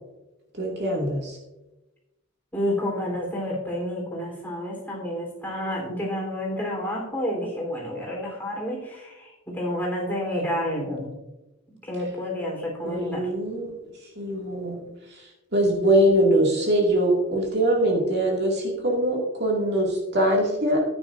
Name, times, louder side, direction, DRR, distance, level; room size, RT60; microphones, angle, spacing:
voice 1, 0.6-1.4 12.8-13.8 14.2-14.8 15.5-20.8, right 1 dB, 55° right, -2 dB, 2.2 m, -22 dB
voice 2, 2.5-11.1 11.8-13.3, left 1 dB, 10° left, -3 dB, 3.6 m, -29 dB
15.0 x 9.5 x 2.6 m, 1.0 s
head